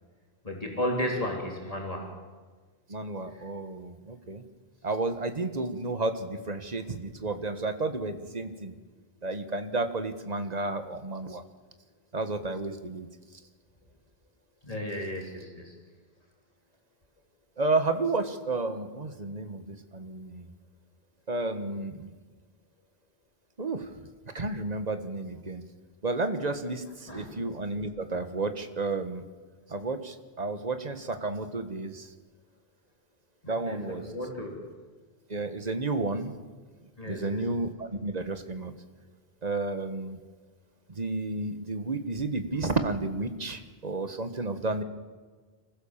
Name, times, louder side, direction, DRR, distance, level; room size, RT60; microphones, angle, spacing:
voice 1, 0.4-2.1 3.3-3.4 14.6-15.7 27.1-27.3 33.4-33.8 34.1-34.6 37.0-37.4, left 1 dB, 35° left, 0 dB, 3.5 m, -33 dB
voice 2, 2.9-4.4 4.8-8.7 9.2-11.4 12.1-13.1 17.6-20.5 21.3-22.1 23.6-23.9 24.3-25.6 26.0-29.2 29.7-32.1 33.5-34.1 35.3-36.3 37.0-38.7 39.4-40.2 40.9-44.8, right 3 dB, 40° right, 9 dB, 1.5 m, -31 dB
26.0 x 15.5 x 7.3 m, 1.4 s
omnidirectional pair, 1.0 m